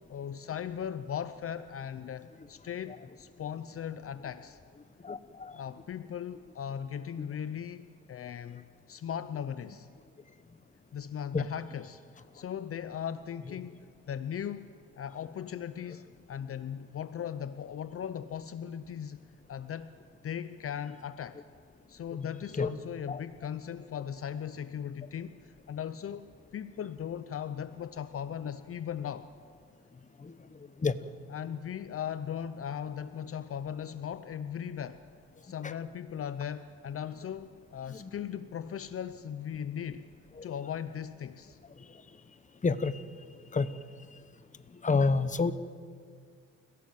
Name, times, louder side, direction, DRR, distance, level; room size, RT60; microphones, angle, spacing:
voice 1, 0.0-4.6 5.5-9.9 10.9-19.2 19.5-19.9 20.2-21.4 21.9-29.3 31.3-35.0 35.4-40.1 40.4-41.6, left 8 dB, 50° left, 12 dB, 0.8 m, -38 dB
voice 2, 5.0-5.6 11.3-11.5 22.5-22.7 23.1-23.2 30.2-30.3 30.8-30.9 35.6-35.7 37.9-38.1 40.4-40.5 42.6-43.0 43.5-43.7 44.8-45.5, left 4 dB, 25° left, 12 dB, 1.1 m, -28 dB
29.0 x 17.0 x 7.6 m, 2.1 s
cardioid pair, 90°, 30 cm